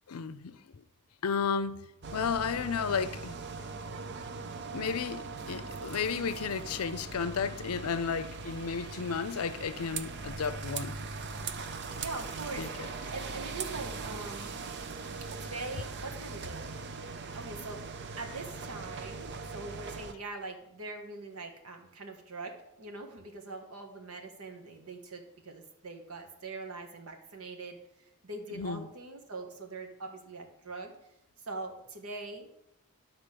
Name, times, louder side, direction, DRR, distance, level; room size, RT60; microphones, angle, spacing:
voice 1, 0.1-0.5 1.2-1.8 2.1-3.4 4.7-11.0 12.5-12.7 28.6-28.8, left 6 dB, 75° left, 0.5 m, -33 dB
sound 1, 2.0-20.1, right 4 dB, 50° right, 0.6 m, -40 dB
voice 2, 12.0-14.6 15.4-16.7 17.3-30.9 31.4-32.5, right 3 dB, 75° right, 1.5 m, -42 dB
10.5 x 4.1 x 6.7 m
head